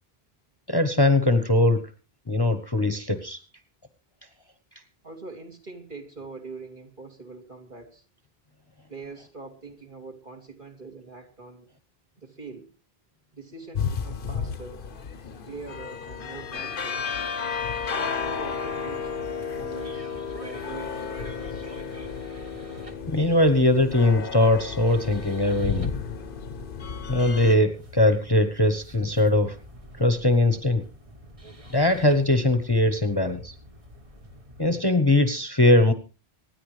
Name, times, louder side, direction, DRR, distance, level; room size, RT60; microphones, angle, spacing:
voice 1, 0.7-1.8 2.3-3.4 23.1-25.9 27.1-29.6 30.0-30.8 31.7-33.5 34.6-35.9, left 1 dB, 25° left, 9 dB, 1.1 m, -21 dB
voice 2, 5.0-8.0 8.9-11.7 12.2-12.7 13.3-14.8 15.4-17.0 18.0-19.1 19.5-21.7, right 3 dB, 50° right, 2 dB, 3.0 m, -43 dB
sound 1, 13.7-27.6, left 6 dB, 60° left, 1.1 m, -33 dB
sound 2, 18.1-34.7, equal, 35° right, 1.5 m, -47 dB
26.0 x 10.0 x 3.3 m, 0.33 s
omnidirectional pair, 1.1 m